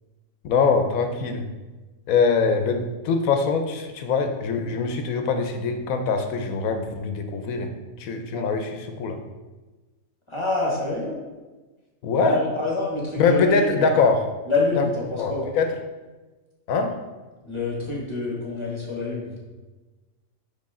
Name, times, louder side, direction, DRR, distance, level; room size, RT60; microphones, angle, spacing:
voice 1, 0.4-1.5 2.1-9.2 12.0-12.4 13.2-14.2 14.8-14.9 15.2-15.8 16.7-17.0, left 4 dB, 80° left, 6 dB, 1.1 m, -23 dB
voice 2, 10.3-11.2 12.1-13.9 14.5-15.5 17.4-19.4, left 2 dB, 20° left, -4 dB, 1.6 m, -27 dB
9.9 x 3.6 x 3.7 m, 1.2 s
omnidirectional pair, 1.4 m